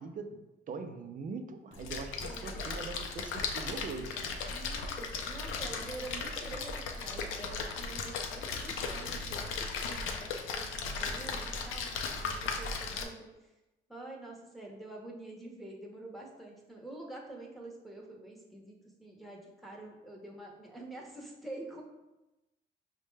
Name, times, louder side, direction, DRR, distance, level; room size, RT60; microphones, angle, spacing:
voice 1, 0.0-4.2, right 4 dB, 45° right, 7 dB, 0.5 m, -42 dB
Splash splatter, 1.7-13.0, left 4 dB, 90° left, 0.5 m, -37 dB
voice 2, 2.3-2.6 4.5-13.3 13.9-21.8, right 2 dB, ahead, -2 dB, 0.9 m, -47 dB
5.2 x 2.2 x 3.2 m, 1.0 s
cardioid pair, 90°, 20 cm